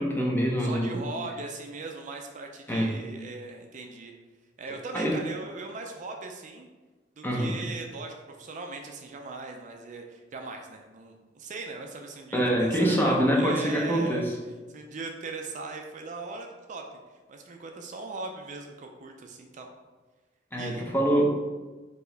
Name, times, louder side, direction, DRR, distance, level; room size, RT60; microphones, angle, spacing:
voice 1, 0.0-1.0 2.7-3.0 4.9-5.2 7.2-7.6 12.3-14.3 20.5-21.5, equal, 10° left, -1 dB, 0.6 m, -25 dB
voice 2, 0.6-4.1 4.6-6.7 7.2-14.3 14.7-19.7 20.6-20.8, right 3 dB, 40° right, 3 dB, 0.4 m, -39 dB
4.5 x 2.8 x 3.3 m, 1.3 s
head